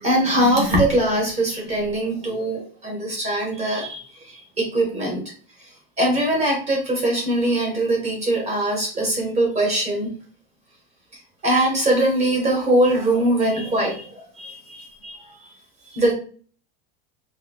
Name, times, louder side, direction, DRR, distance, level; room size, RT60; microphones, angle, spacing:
voice 1, 0.0-5.2 6.0-10.1 11.4-15.3 15.9-16.1, right 1 dB, 20° right, -2 dB, 1.3 m, -22 dB
3.0 x 2.7 x 2.9 m, 0.41 s
supercardioid pair, 170°, 30 cm